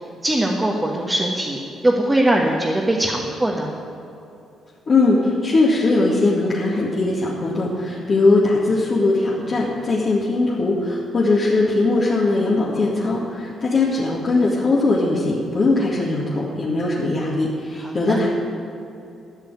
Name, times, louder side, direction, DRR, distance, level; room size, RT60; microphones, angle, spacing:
voice 1, 0.2-3.7 17.8-18.2, right 1 dB, 15° right, -2 dB, 1.5 m, -21 dB
voice 2, 4.9-18.3, left 2 dB, 45° left, -7 dB, 2.2 m, -20 dB
13.0 x 6.3 x 9.9 m, 2.7 s
cardioid pair, 90°, 0 cm